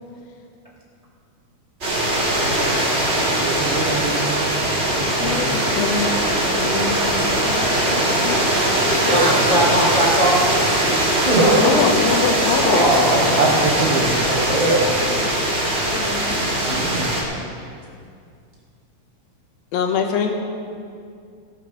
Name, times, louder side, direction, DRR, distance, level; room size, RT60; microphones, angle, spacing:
sound 1, 1.8-17.2, right 1 dB, 35° right, 1.1 m, -21 dB
voice 1, 3.4-4.5 4.9-5.5 9.1-9.2 13.4-14.6, right 3 dB, 80° right, -1 dB, 1.3 m, -25 dB
voice 2, 5.2-9.1 11.5-13.3 13.8-14.0 15.2-15.3 15.9-16.7 19.7-20.3, left 5 dB, 75° left, 2 dB, 2.8 m, -25 dB
voice 3, 9.0-11.7 12.6-13.5 14.3-14.9 15.6-15.7 16.6-17.1, right 1 dB, 55° left, -6 dB, 0.4 m, -20 dB
16.0 x 6.6 x 6.3 m, 2.3 s
omnidirectional pair, 4.2 m